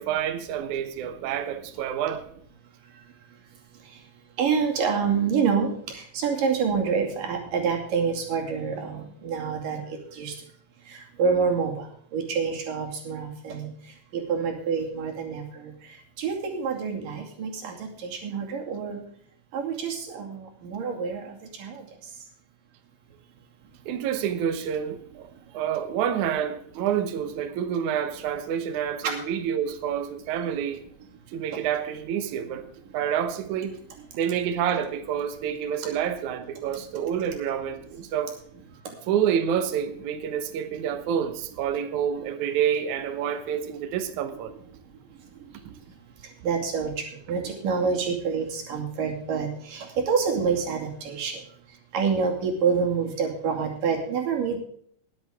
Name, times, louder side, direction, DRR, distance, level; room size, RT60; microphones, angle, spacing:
voice 1, 0.0-2.2 23.8-25.3 25.5-30.8 31.3-32.6 32.9-33.8 34.1-38.3 39.1-44.5, right 9 dB, 90° right, 1.7 m, -28 dB
voice 2, 4.4-10.3 10.9-13.7 14.1-15.7 16.2-19.0 19.5-21.9 29.0-29.1 46.4-51.4 51.9-54.6, right 6 dB, 55° right, 3.8 m, -27 dB
20.5 x 8.0 x 3.5 m
omnidirectional pair, 5.1 m